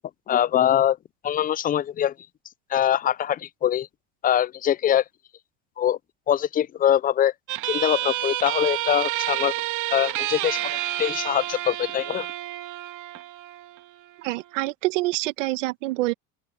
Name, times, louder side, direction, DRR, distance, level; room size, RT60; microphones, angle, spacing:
voice 1, 0.3-1.0 1.2-2.1 2.7-3.9 4.2-5.0 5.8-6.0 6.3-7.3 7.7-9.5 9.9-10.6 11.0-12.3, left 10 dB, 25° left, 0.4 m, -23 dB
sound 1, 7.5-14.5, right 15 dB, 55° right, 2.9 m, -30 dB
voice 2, 14.2-16.1, right 20 dB, 80° right, 1.8 m, -26 dB
open air
supercardioid pair, 100°, 36 cm